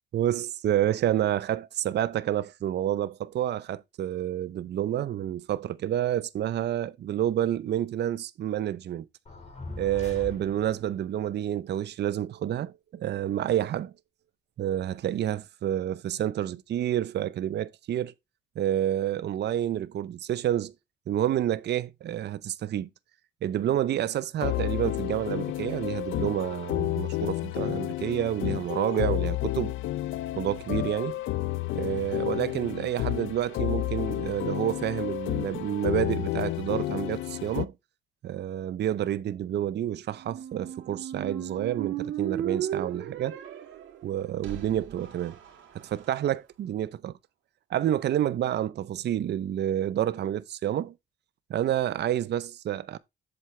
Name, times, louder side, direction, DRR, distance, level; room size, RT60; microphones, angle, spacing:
voice 1, 0.1-9.1 9.8-13.9 14.6-18.1 18.6-20.7 21.1-22.9 23.4-29.7 30.4-31.2 31.7-37.7 38.2-43.4 44.0-45.4 45.7-47.1 47.7-50.9 51.5-53.0, right 11 dB, 60° right, 0.6 m, -29 dB
sound 1, 9.3-10.9, left 3 dB, 35° left, 3.6 m, -41 dB
sound 2, 24.4-37.7, left 16 dB, 80° left, 0.5 m, -31 dB
Squeak, 40.1-46.1, right 10 dB, 80° right, 2.9 m, -36 dB
7.9 x 7.4 x 3.2 m
cardioid pair, 90°, 20 cm